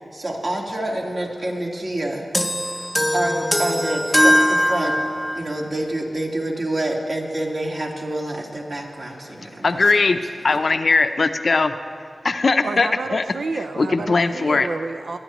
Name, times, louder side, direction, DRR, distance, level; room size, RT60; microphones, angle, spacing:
voice 1, 0.1-2.3 2.6-4.9 5.4-9.8, right 1 dB, 55° right, -2 dB, 2.0 m, -27 dB
sound 1, 2.3-5.5, equal, 5° left, 0.6 m, -20 dB
voice 2, 9.6-11.7 12.2-13.2 13.8-14.7, left 3 dB, 60° left, 8 dB, 0.5 m, -19 dB
voice 3, 12.6-15.2, right 3 dB, 85° right, 7 dB, 0.3 m, -30 dB
22.0 x 10.5 x 3.0 m, 2.3 s
wide cardioid pair, 90°, 0 cm